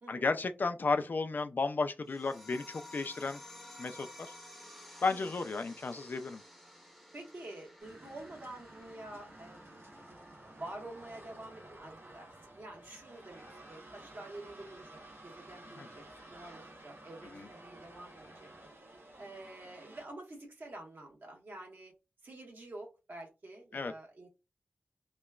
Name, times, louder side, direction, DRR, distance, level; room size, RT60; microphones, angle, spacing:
voice 1, 0.1-3.4 3.8-4.1 5.0-6.4 15.8-15.9 17.3-17.5 23.7-23.9, left 4 dB, 55° left, 0.3 m, -33 dB
sound 1, 2.1-13.1, left 1 dB, ahead, 0.7 m, -54 dB
voice 2, 5.1-5.4 7.1-16.0 16.3-18.5 19.2-21.9 22.2-24.3, right 2 dB, 60° right, 1.1 m, -48 dB
sound 2, 7.8-20.0, right 1 dB, 90° right, 0.9 m, -53 dB
3.0 x 2.2 x 2.3 m
wide cardioid pair, 85°, 4 cm